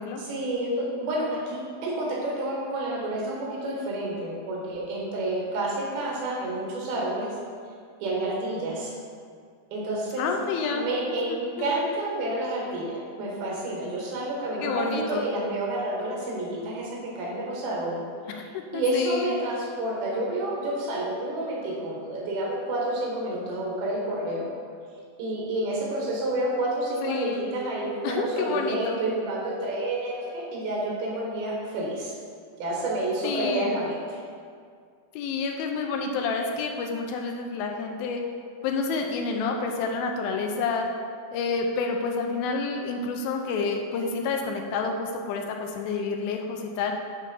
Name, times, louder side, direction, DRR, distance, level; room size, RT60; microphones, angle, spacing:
voice 1, 0.2-7.4 8.0-8.9 9.7-10.3 10.7-18.0 18.3-18.4 18.7-24.5 25.2-32.1 32.6-34.2, right 1 dB, 80° right, -3 dB, 3.3 m, -29 dB
voice 2, 10.2-10.9 11.6-11.7 14.6-15.3 18.3-19.3 27.0-27.5 28.0-29.0 33.2-33.8 35.1-38.2 38.6-40.9 41.3-46.9, left 4 dB, 85° left, 3 dB, 2.4 m, -29 dB
8.4 x 3.7 x 5.3 m, 2.2 s
omnidirectional pair, 4.4 m